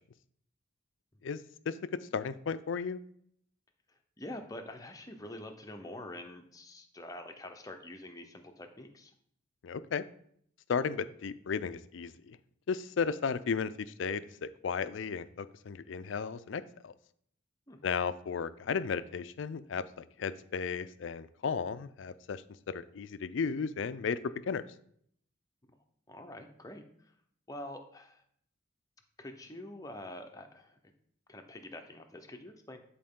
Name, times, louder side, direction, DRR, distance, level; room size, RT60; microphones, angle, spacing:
voice 1, 2.1-3.0 9.6-10.0 10.7-12.4 12.7-16.9 17.8-22.4 22.7-24.2 24.5-24.6, left 6 dB, 70° left, 14 dB, 0.4 m, -34 dB
voice 2, 4.2-9.1 17.7-17.8 26.1-26.8 27.5-28.2 29.2-30.8 31.3-32.8, left 1 dB, 20° left, 5 dB, 0.7 m, -46 dB
10.0 x 4.2 x 3.7 m, 0.66 s
head